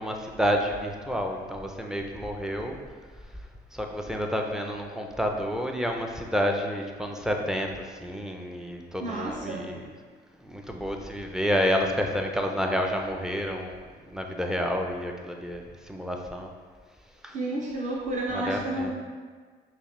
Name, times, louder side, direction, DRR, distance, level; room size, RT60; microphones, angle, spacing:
voice 1, 0.0-2.8 3.7-9.9 10.4-16.5 17.2-17.4 18.3-18.9, equal, 5° right, 2 dB, 0.4 m, -29 dB
voice 2, 9.0-9.7 17.3-18.9, right 1 dB, 40° right, -4 dB, 0.7 m, -31 dB
5.4 x 2.1 x 3.1 m, 1.5 s
cardioid pair, 90°, 20 cm